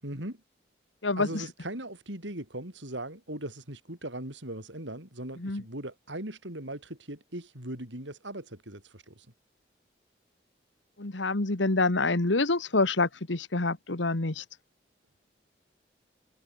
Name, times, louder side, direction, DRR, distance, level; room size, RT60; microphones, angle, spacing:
voice 1, 0.0-0.4 1.2-9.3, right 1 dB, 80° right, 6.6 m, -39 dB
voice 2, 1.0-1.4 5.4-5.6 11.0-14.4, left 3 dB, 80° left, 1.6 m, -27 dB
head